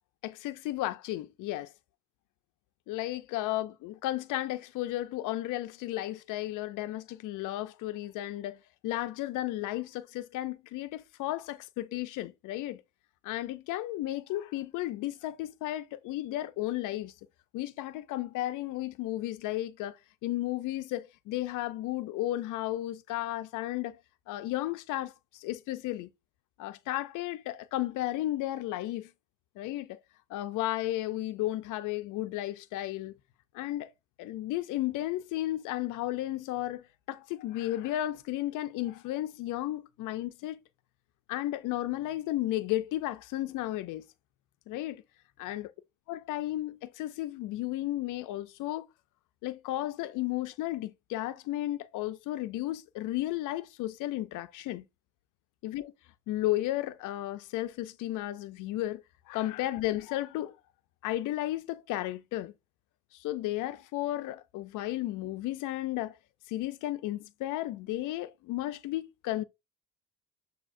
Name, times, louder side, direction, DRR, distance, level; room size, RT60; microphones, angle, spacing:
voice 1, 0.2-1.7 2.9-8.6 8.8-12.8 13.2-17.1 17.5-24.0 24.3-26.1 26.6-29.1 29.6-30.0 30.3-33.1 33.5-33.9 34.2-40.6 41.3-44.0 44.7-45.0 45.4-45.7 46.1-48.9 49.4-54.8 55.6-55.9 56.3-60.6 61.0-62.5 63.1-66.2 66.5-69.4, left 15 dB, 90° left, 0.5 m, -34 dB
7.3 x 2.8 x 2.5 m
cardioid pair, 90°, 30 cm